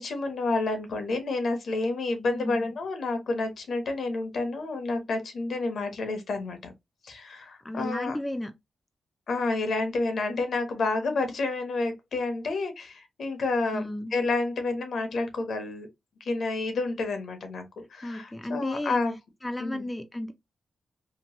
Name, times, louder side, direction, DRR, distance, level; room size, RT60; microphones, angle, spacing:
voice 1, 0.0-6.7 7.0-8.2 9.3-15.9 16.2-17.6 17.9-19.2 19.6-19.8, left 3 dB, 70° left, 0.8 m, -29 dB
voice 2, 2.3-2.7 7.6-8.5 13.7-14.1 18.0-19.0 19.4-20.3, left 1 dB, 10° left, 0.4 m, -33 dB
2.9 x 2.2 x 2.8 m
wide cardioid pair, 105°, 0 cm